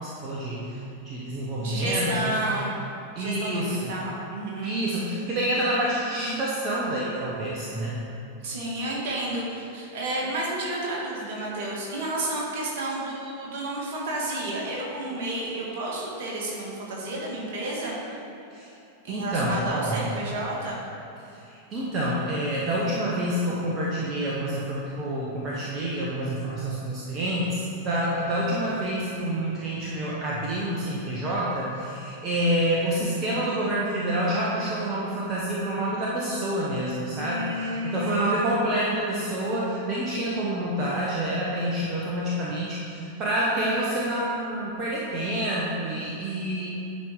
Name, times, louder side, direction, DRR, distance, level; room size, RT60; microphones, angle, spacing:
voice 1, 0.0-2.4 3.1-3.9 4.6-7.9 18.5-18.7 19.1-20.0 21.3-46.7, right 1 dB, 30° right, -5 dB, 1.0 m, -28 dB
voice 2, 1.6-2.8 3.2-4.8 8.4-18.2 19.0-20.8 37.2-38.6, right 1 dB, 55° right, -3 dB, 1.7 m, -31 dB
10.0 x 4.6 x 3.8 m, 2.8 s
figure-of-eight pair, 90°, 0 cm